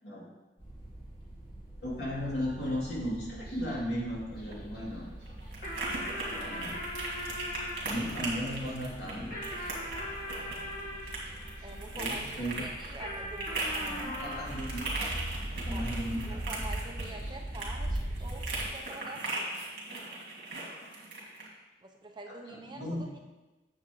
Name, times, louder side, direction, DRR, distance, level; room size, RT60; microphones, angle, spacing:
sound 1, 0.6-18.7, right 1 dB, 30° left, 2.3 m, -41 dB
voice 1, 1.8-5.1 6.2-6.7 7.8-9.3 11.9-12.7 14.0-15.2 15.5-16.6 19.0-19.1 22.5-23.1, equal, 70° left, -5 dB, 2.7 m, -36 dB
sound 2, 4.3-21.5, right 2 dB, 65° right, 2.1 m, -39 dB
sound 3, 5.6-12.3 13.0-15.8, left 1 dB, 50° left, 1.6 m, -41 dB
voice 2, 11.6-14.4 15.7-15.9 16.3-19.7 21.8-23.2, right 2 dB, 25° right, 2 dB, 0.7 m, -46 dB
8.5 x 7.5 x 3.1 m, 1.1 s
head